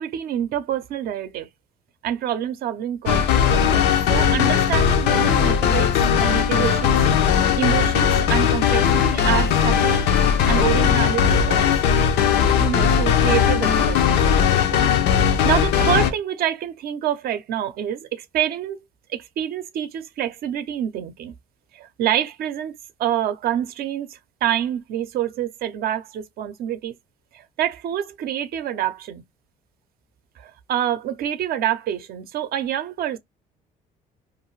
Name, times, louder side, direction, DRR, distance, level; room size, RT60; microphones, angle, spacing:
voice 1, 0.0-1.5 2.0-5.9 6.2-10.1 10.5-11.7 12.0-14.9 15.4-18.8 19.1-21.3 21.7-22.7 23.0-26.9 27.3-29.2 30.4-33.2, right 11 dB, 65° right, 0.5 m, -27 dB
sound 1, 3.1-16.1, left 8 dB, 85° left, 0.5 m, -18 dB
2.5 x 2.3 x 3.1 m
cardioid pair, 110°, 17 cm